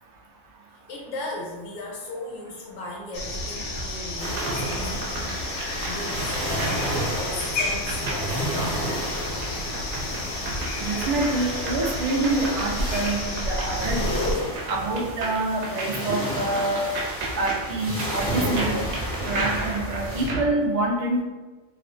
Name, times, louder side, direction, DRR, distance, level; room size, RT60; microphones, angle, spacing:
voice 1, 0.9-9.3 12.4-12.5 14.0-14.6, left 2 dB, 75° left, -2 dB, 0.9 m, -36 dB
sound 1, 3.1-14.4, left 1 dB, 90° left, 1.0 m, -31 dB
sound 2, 3.7-20.5, right 2 dB, 70° right, 0.8 m, -36 dB
sound 3, 4.2-20.3, equal, 25° left, 0.5 m, -32 dB
voice 2, 10.8-14.2 14.7-16.8 17.3-18.9 19.2-21.2, right 2 dB, 90° right, -1 dB, 0.3 m, -26 dB
2.4 x 2.3 x 2.4 m, 1.2 s
omnidirectional pair, 1.3 m